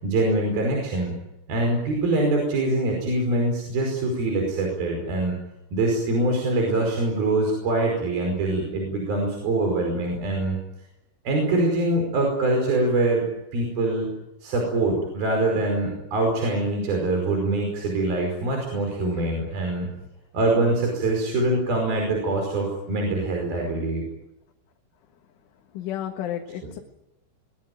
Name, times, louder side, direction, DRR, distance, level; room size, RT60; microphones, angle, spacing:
voice 1, 0.0-1.1 1.5-5.3 5.7-10.6 11.2-13.2 13.5-14.1 14.4-19.9 20.3-24.0 26.6-26.7, right 2 dB, 50° right, 1 dB, 6.8 m, -24 dB
voice 2, 25.8-26.8, left 11 dB, 90° left, 3 dB, 4.2 m, -31 dB
23.0 x 22.5 x 9.3 m, 0.89 s
omnidirectional pair, 5.4 m